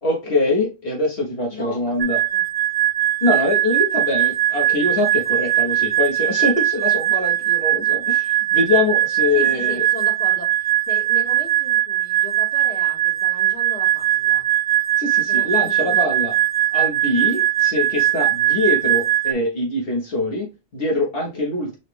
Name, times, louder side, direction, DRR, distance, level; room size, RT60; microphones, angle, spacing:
voice 1, 0.0-2.2 3.2-9.9 15.0-16.3 16.7-21.8, left 2 dB, 60° left, -1 dB, 1.5 m, -23 dB
voice 2, 1.5-2.4 9.3-10.5 10.9-14.4 15.3-16.4, left 3 dB, 85° left, -4 dB, 2.3 m, -37 dB
sound 1, 2.0-19.3, right 13 dB, 60° right, 0.3 m, -20 dB
5.6 x 2.5 x 3.4 m, 0.27 s
omnidirectional pair, 1.1 m